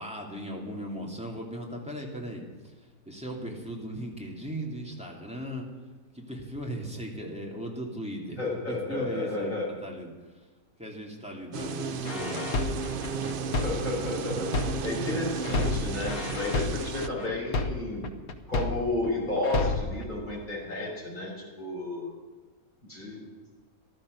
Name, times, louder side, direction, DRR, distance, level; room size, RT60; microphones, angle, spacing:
voice 1, 0.0-5.7 6.1-8.4 8.7-9.5 9.8-10.5 10.8-12.8, equal, 5° right, -1 dB, 2.5 m, -38 dB
voice 2, 8.4-9.7 11.6-11.9 13.5-18.1 18.5-22.1 22.9-23.2, left 2 dB, 30° left, -4 dB, 5.8 m, -32 dB
sound 1, 11.5-17.1, right 6 dB, 55° right, 0.6 m, -34 dB
sound 2, 12.1-15.1 15.4-19.1 19.4-20.0, left 3 dB, 75° left, 1.5 m, -30 dB
15.0 x 12.0 x 6.5 m, 1.3 s
omnidirectional pair, 1.5 m